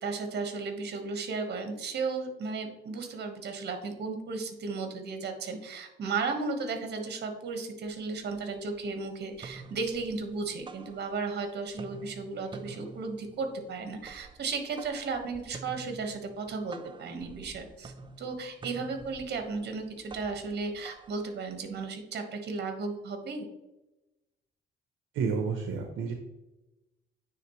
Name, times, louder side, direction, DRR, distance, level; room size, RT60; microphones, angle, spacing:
voice 1, 0.0-23.5, right 4 dB, 55° right, 5 dB, 1.3 m, -35 dB
sound 1, 7.9-8.0 8.3-8.9 9.2-11.4 11.7-21.8, right 3 dB, 25° right, 0.5 m, -49 dB
voice 2, 25.1-26.1, right 5 dB, 80° right, 3 dB, 0.7 m, -30 dB
9.3 x 3.5 x 3.0 m, 0.98 s
cardioid pair, 90°, 20 cm